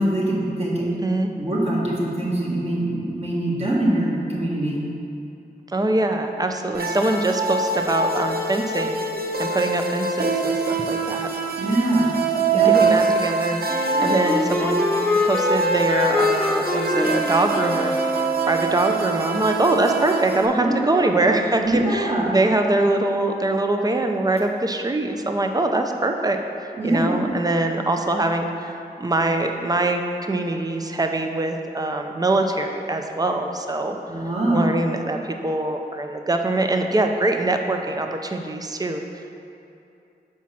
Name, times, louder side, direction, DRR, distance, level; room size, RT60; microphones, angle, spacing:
voice 1, 0.0-0.9 1.4-4.8 11.6-12.1 12.5-12.9 20.5-21.1 21.6-22.3 26.8-27.2 34.1-34.6, right 1 dB, 40° right, -6 dB, 1.7 m, -23 dB
voice 2, 0.6-1.3 5.7-9.0 9.4-11.3 12.5-15.0 15.2-17.9 18.4-26.4 26.8-34.0 34.5-39.0, right 2 dB, 20° right, 4 dB, 0.5 m, -23 dB
sound 1, 6.7-20.5, right 4 dB, 65° right, 0.6 m, -24 dB
Wind instrument woodwind instrument, 13.7-18.7, left 1 dB, 5° left, 1.0 m, -24 dB
6.1 x 4.5 x 5.8 m, 2.7 s
wide cardioid pair, 70°, 17 cm